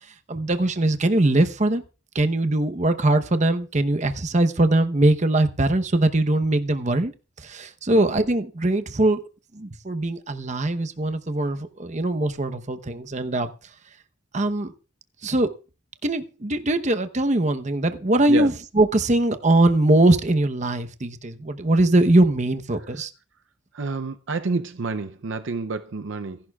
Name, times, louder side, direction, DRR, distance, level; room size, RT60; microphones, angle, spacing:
voice 1, 0.3-1.8 2.1-7.1 7.4-9.2 9.5-13.5 14.3-14.7 15.2-15.5 16.0-23.1, right 2 dB, 35° right, 0.9 m, -21 dB
voice 2, 23.7-26.4, right 4 dB, 65° right, 0.6 m, -29 dB
26.0 x 11.0 x 2.4 m
head